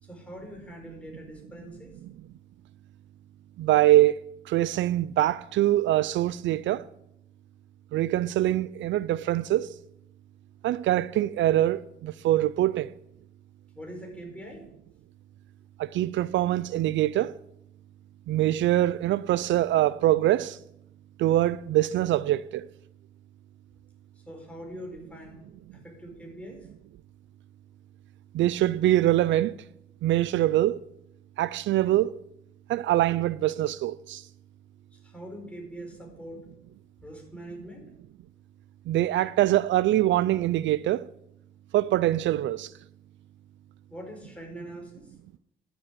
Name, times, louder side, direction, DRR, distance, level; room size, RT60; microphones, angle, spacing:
voice 1, 0.0-1.9 13.7-14.6 24.3-25.4 25.7-26.7 34.9-36.4 37.0-37.8 43.9-45.1, equal, 5° left, 4.8 m, -43 dB
voice 2, 3.6-4.2 4.5-6.9 7.9-9.7 10.6-12.9 15.8-17.3 18.3-20.6 21.2-22.7 28.3-29.6 30.0-30.8 31.4-32.2 32.7-34.3 38.9-41.1 41.7-42.7, right 14 dB, 70° right, 0.4 m, -24 dB
12.0 x 7.1 x 8.3 m
cardioid pair, 90°, 20 cm